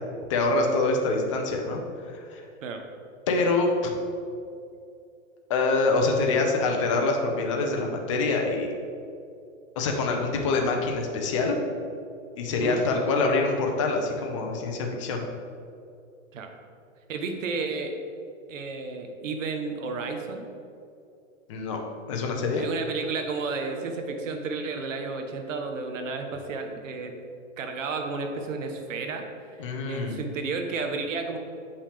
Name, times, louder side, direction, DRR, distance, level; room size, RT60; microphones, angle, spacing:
voice 1, 0.3-1.8 2.1-2.4 3.3-3.9 5.5-8.7 9.8-11.6 12.4-15.2 21.5-21.8 22.1-22.7 29.6-30.2, left 3 dB, 25° left, 2 dB, 0.5 m, -25 dB
voice 2, 17.1-17.9 18.5-20.5 22.5-27.1 27.6-29.2 29.5-31.4, right 4 dB, 70° right, 5 dB, 1.1 m, -32 dB
7.2 x 5.6 x 3.4 m, 2.4 s
hypercardioid pair, 165°, 40 cm